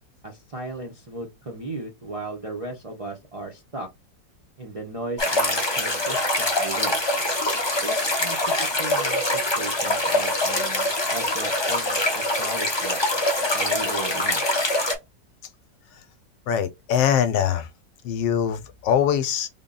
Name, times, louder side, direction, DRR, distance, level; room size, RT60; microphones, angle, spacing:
voice 1, 0.2-3.9 4.6-7.0 7.8-13.0 13.5-14.4, right 2 dB, 65° right, 0.3 m, -36 dB
sound 1, 5.2-14.9, left 1 dB, 35° left, 0.4 m, -24 dB
voice 2, 16.5-17.7 18.0-19.5, left 9 dB, 80° left, 1.2 m, -23 dB
3.6 x 2.2 x 3.7 m
omnidirectional pair, 2.0 m